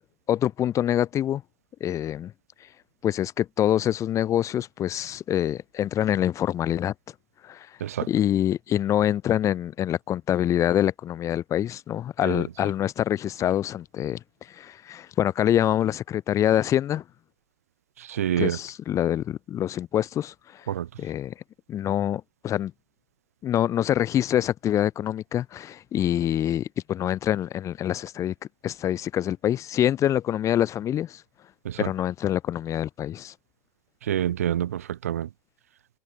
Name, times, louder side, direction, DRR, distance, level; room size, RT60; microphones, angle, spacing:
voice 1, 0.3-1.4 1.8-2.3 3.0-6.9 7.4-7.7 8.1-17.0 18.4-20.7 21.0-21.3 21.7-22.7 23.4-28.3 28.6-31.2 31.8-33.3, left 11 dB, 40° left, 2.4 m, -25 dB
voice 2, 18.0-18.6 20.7-20.9 31.6-31.9 34.1-35.3, right 11 dB, 75° right, 3.2 m, -27 dB
figure-of-eight pair, 70°, 8 cm